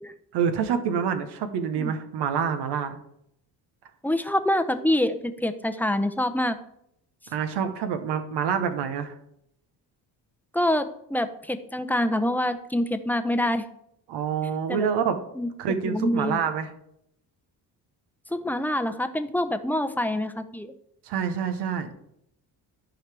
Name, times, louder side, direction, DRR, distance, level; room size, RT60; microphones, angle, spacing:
voice 1, 0.3-3.0 7.3-9.1 14.1-15.2 15.6-16.7 21.1-21.9, right 7 dB, 80° right, 8 dB, 1.0 m, -27 dB
voice 2, 4.0-6.6 10.5-13.6 14.7-14.9 15.4-15.5 15.8-16.4 18.3-20.7, left 1 dB, 5° left, 8 dB, 0.7 m, -26 dB
14.0 x 4.8 x 3.4 m, 0.76 s
cardioid pair, 90°, 40 cm